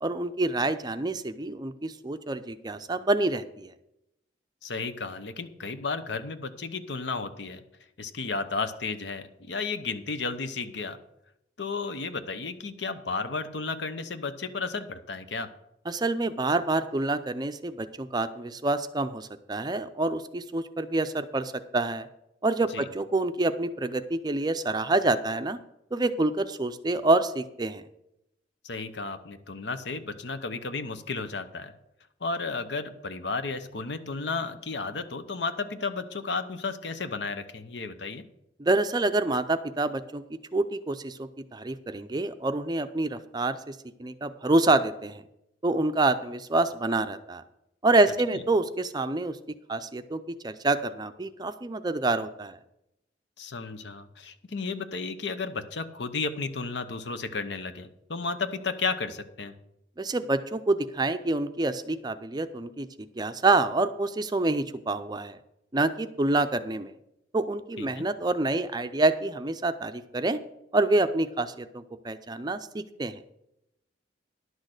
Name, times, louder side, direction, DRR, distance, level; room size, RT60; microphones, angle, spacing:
voice 1, 0.0-3.7 15.9-22.1 22.4-25.6 25.9-27.8 38.6-45.2 45.6-47.4 47.8-49.4 49.7-52.6 60.0-65.4 65.7-66.9 67.3-70.4 70.7-73.2, right 2 dB, 25° right, 10 dB, 0.5 m, -27 dB
voice 2, 4.6-7.6 8.0-11.0 11.6-15.5 22.7-22.9 28.6-31.7 32.2-38.2 53.4-59.5 67.8-68.0, left 4 dB, 70° left, 10 dB, 0.8 m, -33 dB
11.0 x 6.4 x 6.5 m, 0.83 s
head